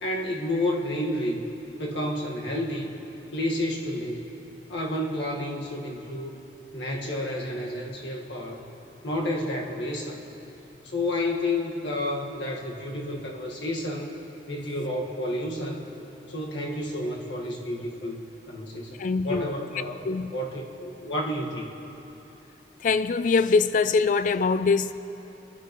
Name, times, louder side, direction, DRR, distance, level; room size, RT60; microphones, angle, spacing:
voice 1, 0.0-1.4 1.8-2.9 3.3-4.2 4.7-6.3 6.7-8.7 9.0-10.2 10.8-14.1 14.5-15.8 16.3-18.2 18.5-20.0 20.3-21.7, left 1 dB, 90° left, 1.8 m, -30 dB
voice 2, 19.0-19.5 20.1-20.3 22.8-24.9, left 4 dB, 45° left, 0.4 m, -23 dB
24.5 x 10.5 x 3.1 m
head